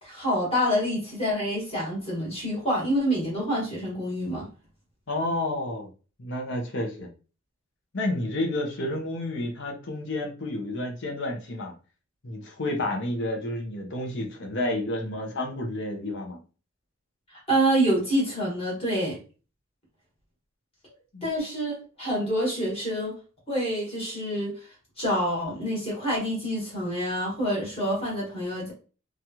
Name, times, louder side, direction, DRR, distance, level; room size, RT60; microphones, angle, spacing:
voice 1, 0.0-4.5 17.5-19.2 21.2-23.2 23.5-24.5 25.0-28.7, equal, 30° left, -4 dB, 1.4 m, -27 dB
voice 2, 5.1-5.9 6.2-7.1 7.9-11.7 12.2-16.4 21.1-21.3, left 1 dB, 55° left, 1 dB, 0.8 m, -30 dB
3.1 x 2.4 x 2.8 m, 0.36 s
head